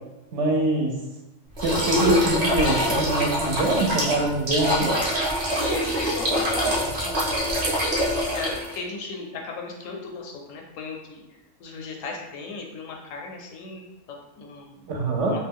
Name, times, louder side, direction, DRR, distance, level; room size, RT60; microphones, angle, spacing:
voice 1, 0.3-0.9 1.6-4.9 14.9-15.3, right 2 dB, 65° right, 0 dB, 0.9 m, -24 dB
sound 1, 1.6-8.8, equal, 40° right, 0.6 m, -24 dB
voice 2, 5.5-7.5 8.1-11.2 11.6-14.9 15.2-15.4, left 4 dB, 85° left, 1 dB, 1.0 m, -36 dB
2.5 x 2.2 x 3.5 m, 1.0 s
omnidirectional pair, 1.3 m